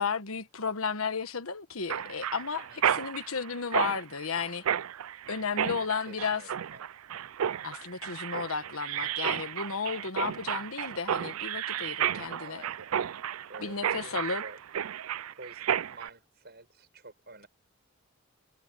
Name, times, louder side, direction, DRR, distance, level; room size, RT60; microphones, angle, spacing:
voice 1, 0.0-4.7 5.3-6.4 7.6-12.6 13.6-14.4, left 5 dB, 85° left, 1.3 m, -33 dB
Mechanisms, 1.9-16.1, right 9 dB, 85° right, 0.4 m, -32 dB
voice 2, 2.7-3.0 6.0-6.9 12.4-13.1 13.5-14.6 15.3-17.5, right 2 dB, 50° right, 7.9 m, -49 dB
head